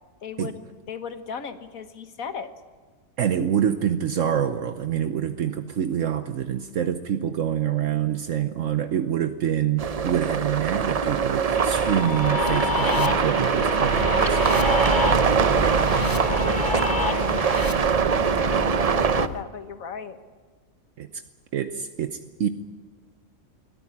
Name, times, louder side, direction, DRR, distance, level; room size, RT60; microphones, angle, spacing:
voice 1, 0.2-2.5 14.5-14.9 16.0-17.3 18.4-20.2, left 6 dB, 85° left, 9 dB, 1.7 m, -35 dB
voice 2, 3.2-14.4 21.0-21.2 21.5-22.5, right 9 dB, 70° right, 9 dB, 1.2 m, -26 dB
sound 1, 9.8-19.3, right 6 dB, 40° right, 0.5 m, -22 dB
sound 2, 11.5-17.7, left 4 dB, 15° left, 1.0 m, -30 dB
sound 3, 12.2-19.4, left 4 dB, 40° left, 1.0 m, -34 dB
22.5 x 14.5 x 9.8 m, 1.5 s
omnidirectional pair, 1.4 m